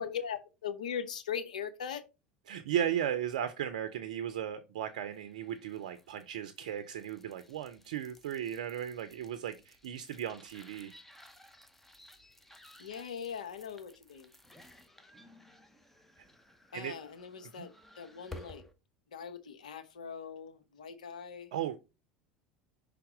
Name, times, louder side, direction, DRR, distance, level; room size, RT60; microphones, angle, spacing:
voice 1, 0.0-2.0 12.8-14.3 16.7-18.6 19.1-21.5, left 7 dB, 80° left, 0.8 m, -40 dB
voice 2, 2.5-10.9 16.7-17.0 17.6-17.7 21.5-21.8, right 10 dB, 75° right, 0.5 m, -36 dB
sound 1, 5.1-18.7, left 1 dB, 5° left, 1.0 m, -56 dB
5.7 x 3.5 x 4.9 m
hypercardioid pair, 80°, 4 cm